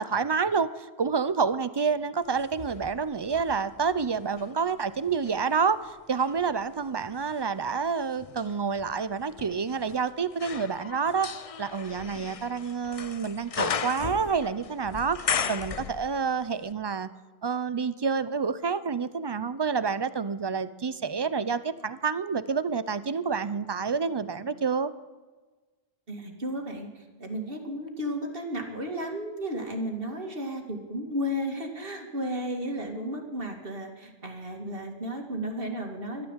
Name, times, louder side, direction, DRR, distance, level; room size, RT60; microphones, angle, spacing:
voice 1, 0.0-11.3 11.6-15.2 15.5-17.1 17.4-24.9, right 5 dB, 30° right, 15 dB, 0.5 m, -28 dB
sound 1, 2.3-4.5 5.1-16.4 16.7-16.8, left 6 dB, 40° left, 0.6 m, -37 dB
voice 2, 26.1-36.3, equal, 60° right, 3 dB, 2.4 m, -33 dB
14.0 x 12.0 x 8.1 m, 1.3 s
omnidirectional pair, 1.1 m